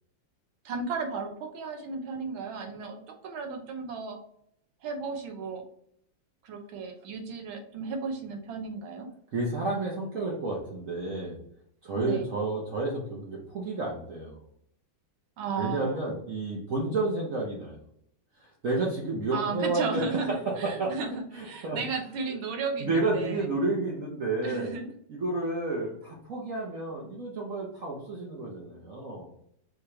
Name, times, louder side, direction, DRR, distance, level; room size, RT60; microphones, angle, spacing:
voice 1, 0.6-4.2 4.8-5.6 6.4-9.1 11.9-12.3 15.4-16.0 19.3-23.4 24.4-24.9, right 4 dB, 90° right, 4 dB, 1.6 m, -34 dB
voice 2, 9.3-11.4 11.8-14.4 15.6-17.8 18.4-20.9 21.3-21.8 22.3-22.4 22.8-24.7 25.1-29.3, right 2 dB, 55° right, -3 dB, 1.1 m, -31 dB
4.8 x 2.9 x 3.3 m, 0.69 s
omnidirectional pair, 2.1 m